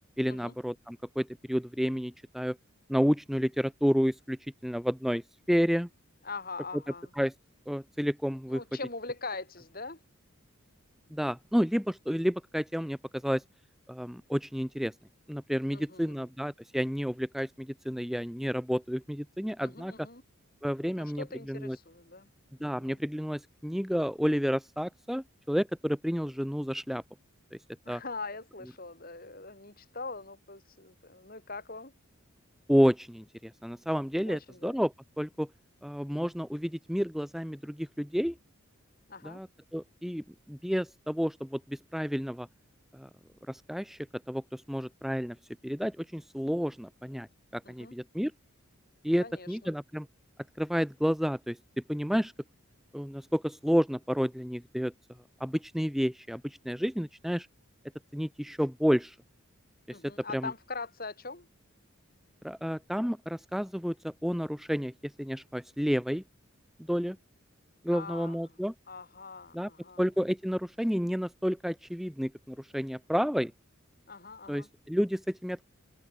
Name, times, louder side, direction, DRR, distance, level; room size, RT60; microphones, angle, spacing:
voice 1, 0.2-2.6 2.9-5.2 5.5-5.9 7.1-7.3 7.7-8.6 11.1-13.4 13.9-14.9 15.3-19.9 20.6-21.8 22.6-27.0 27.5-27.6 27.9-28.0 32.7-35.5 35.8-38.4 39.2-39.5 39.7-42.5 42.9-43.1 43.5-45.4 45.6-47.3 47.5-48.3 49.0-50.1 50.6-52.3 52.9-54.9 55.4-57.5 58.1-59.2 59.9-60.0 60.3-60.5 62.4-66.2 66.9-67.2 67.8-68.7 69.5-69.7 70.0-73.5 74.5-75.7, equal, ahead, 1.4 m, -30 dB
voice 2, 6.2-7.1 8.5-10.0 15.7-16.2 19.6-20.2 21.0-22.3 22.6-23.0 27.9-31.9 34.2-34.7 39.1-39.4 47.6-47.9 49.2-49.7 59.9-61.5 67.9-68.4 68.9-70.0 74.1-74.7, left 3 dB, 45° left, 7.5 m, -42 dB
head